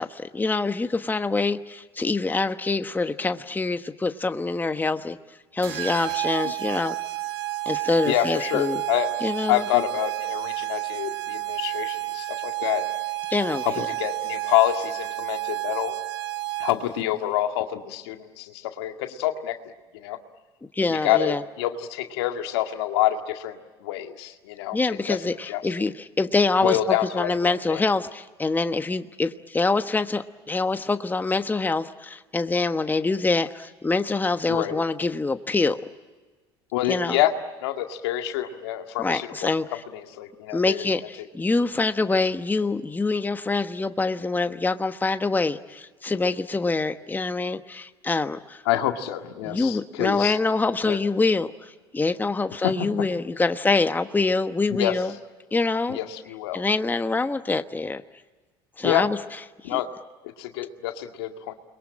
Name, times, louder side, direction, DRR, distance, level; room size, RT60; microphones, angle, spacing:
voice 1, 0.0-5.2 5.5-7.0 7.7-8.8 9.2-9.7 13.3-13.9 20.7-21.4 24.7-35.8 36.9-37.2 39.0-39.6 40.5-48.6 49.4-55.1 55.5-56.0 56.5-58.0 58.8-59.2 59.6-59.8, left 3 dB, 15° left, 9 dB, 1.2 m, -25 dB
sound 1, 5.6-17.0, right 17 dB, 80° right, 1.5 m, -30 dB
voice 2, 8.1-9.1 9.5-12.9 13.6-16.0 16.6-19.6 19.9-20.2 20.9-24.8 25.1-25.2 25.4-25.6 26.6-27.8 34.5-34.8 36.7-37.3 37.6-39.5 39.9-40.9 48.7-50.4 50.9-51.0 52.6-52.7 54.7-55.0 55.9-56.6 58.8-59.0 59.6-59.9 60.2-61.5, left 13 dB, 80° left, 5 dB, 2.0 m, -27 dB
29.5 x 22.5 x 8.8 m, 1.3 s
hypercardioid pair, 80°, 13 cm